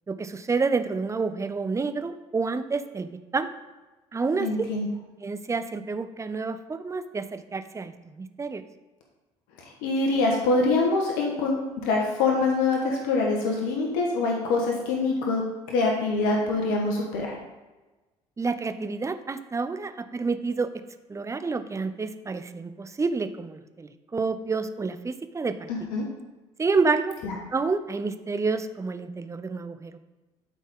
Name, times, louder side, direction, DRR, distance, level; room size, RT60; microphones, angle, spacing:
voice 1, 0.1-3.5 4.1-4.7 5.2-8.6 18.4-20.7 21.1-25.7 26.6-27.2 27.5-30.0, right 4 dB, 20° right, 11 dB, 0.7 m, -29 dB
voice 2, 4.4-4.9 9.6-15.4 15.7-17.3 25.7-26.0 27.2-27.4, left 3 dB, 75° left, 0 dB, 1.3 m, -25 dB
12.5 x 4.1 x 3.7 m, 1.1 s
hypercardioid pair, 70°, 14 cm